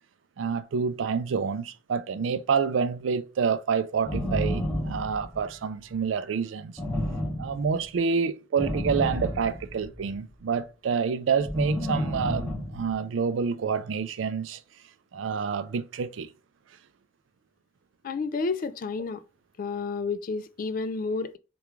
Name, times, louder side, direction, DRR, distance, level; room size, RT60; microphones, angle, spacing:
voice 1, 0.4-6.8 7.4-14.6 15.1-16.3, right 6 dB, 90° right, 0.4 m, -28 dB
sound 1, 4.0-5.5 6.8-7.8 8.6-10.1 11.4-12.9, equal, 5° left, 0.8 m, -30 dB
voice 2, 18.0-19.2 19.6-21.4, left 4 dB, 45° left, 0.3 m, -30 dB
3.4 x 2.3 x 3.0 m
head